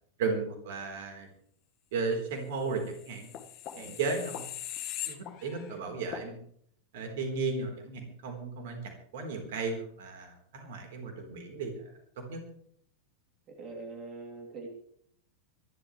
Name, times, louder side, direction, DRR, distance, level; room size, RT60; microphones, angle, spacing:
voice 1, 0.2-1.3 1.9-3.3 3.8-4.4 5.0-6.4 6.9-11.7 12.2-12.4, right 4 dB, 55° right, 4 dB, 4.0 m, -35 dB
sound 1, 2.8-5.7 6.1-6.3, left 11 dB, 40° left, 1.7 m, -40 dB
voice 2, 13.5-14.7, right 3 dB, 35° right, 1 dB, 3.2 m, -43 dB
25.0 x 12.0 x 3.3 m, 0.64 s
figure-of-eight pair, 90°, 0 cm